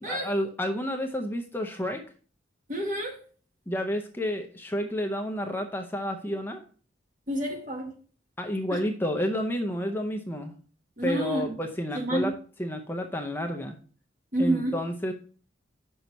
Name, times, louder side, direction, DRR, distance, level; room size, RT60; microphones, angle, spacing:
voice 1, 0.0-2.0 3.7-6.6 8.4-10.5 11.0-12.3 12.6-13.8 14.4-15.1, equal, 10° left, 4 dB, 0.6 m, -30 dB
voice 2, 2.7-3.2 7.3-8.0 8.7-8.8 11.0-11.6 11.9-12.3 14.3-14.8, right 1 dB, 45° right, 1 dB, 1.6 m, -29 dB
6.1 x 5.4 x 4.0 m, 0.41 s
head